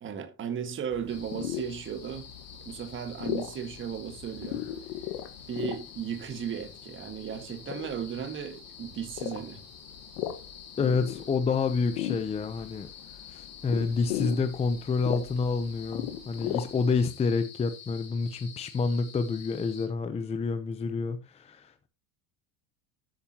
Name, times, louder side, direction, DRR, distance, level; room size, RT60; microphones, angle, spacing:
voice 1, 0.0-2.2 2.6-4.7 5.5-9.6, right 8 dB, 30° right, 1.7 m, -35 dB
sound 1, 0.9-17.0, left 12 dB, 80° left, 1.5 m, -38 dB
sound 2, 1.1-19.9, left 6 dB, 40° left, 3.8 m, -49 dB
voice 2, 10.8-12.9 13.3-21.9, left 4 dB, 15° left, 0.7 m, -28 dB
13.0 x 8.8 x 2.9 m
cardioid pair, 145°, 40 cm